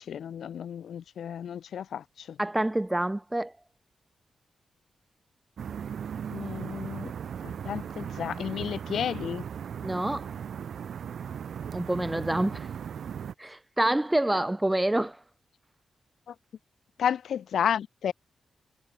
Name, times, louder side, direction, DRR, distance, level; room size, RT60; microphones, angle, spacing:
voice 1, 0.0-2.4 6.3-7.1 7.4-9.4 16.3-16.4 17.0-18.1, left 8 dB, 85° left, 0.8 m, -32 dB
voice 2, 2.4-3.5 9.8-10.3 11.7-12.7 13.4-15.2, right 1 dB, 10° right, 0.6 m, -27 dB
sound 1, 5.6-13.3, right 8 dB, 75° right, 0.5 m, -37 dB
wide cardioid pair, 110°, 0 cm